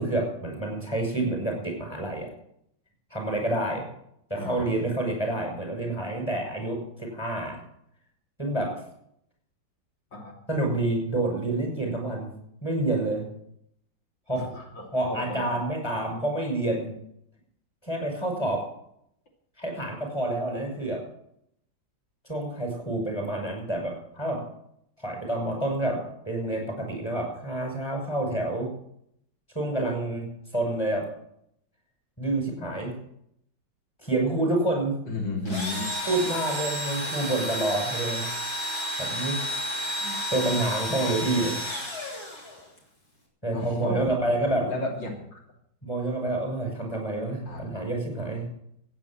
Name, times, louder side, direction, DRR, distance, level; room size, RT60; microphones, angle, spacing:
voice 1, 0.0-2.3 3.1-3.8 4.3-7.6 8.4-8.7 10.5-12.3 12.6-13.2 14.3-14.5 14.9-16.9 17.8-18.6 19.6-21.0 22.3-24.4 25.0-26.0 26.3-28.7 29.5-30.3 30.5-31.1 32.2-32.9 34.0-35.0 36.1-38.2 39.0-39.7 40.0-41.6 43.4-44.7 45.8-48.5, right 2 dB, 15° left, 1 dB, 6.0 m, -28 dB
voice 2, 4.4-4.7 10.1-10.3 14.3-15.6 35.1-35.9 43.5-44.4 44.7-45.4 47.5-47.6, left 2 dB, 85° left, 0 dB, 3.7 m, -33 dB
Engine / Drill, 35.5-42.8, equal, 55° left, 4.1 m, -31 dB
15.5 x 9.4 x 7.3 m, 0.73 s
omnidirectional pair, 2.0 m